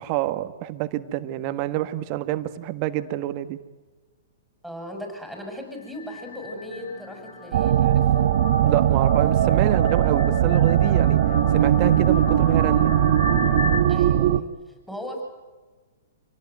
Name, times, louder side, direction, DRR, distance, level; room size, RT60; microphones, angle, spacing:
voice 1, 0.0-3.6 8.6-11.2 11.5-12.9, right 14 dB, 40° right, 10 dB, 1.5 m, -27 dB
voice 2, 4.6-8.3 13.9-15.2, equal, ahead, 2 dB, 6.5 m, -37 dB
sound 1, 5.9-13.8, left 3 dB, 55° left, 5.8 m, -33 dB
sound 2, 7.5-14.4, right 11 dB, 60° right, 1.1 m, -19 dB
26.0 x 18.0 x 9.4 m, 1.3 s
hypercardioid pair, 125°, 0 cm